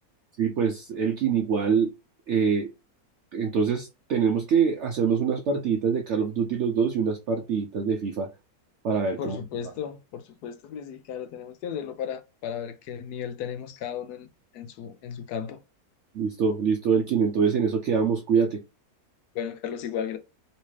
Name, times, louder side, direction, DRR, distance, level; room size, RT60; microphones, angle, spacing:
voice 1, 0.4-1.9 2.3-2.7 3.3-8.3 8.8-9.4 16.1-18.6, right 6 dB, 65° right, 0.7 m, -24 dB
voice 2, 9.2-14.3 14.5-15.6 19.3-20.2, left 8 dB, 85° left, 1.2 m, -35 dB
3.2 x 2.9 x 3.1 m
omnidirectional pair, 1.7 m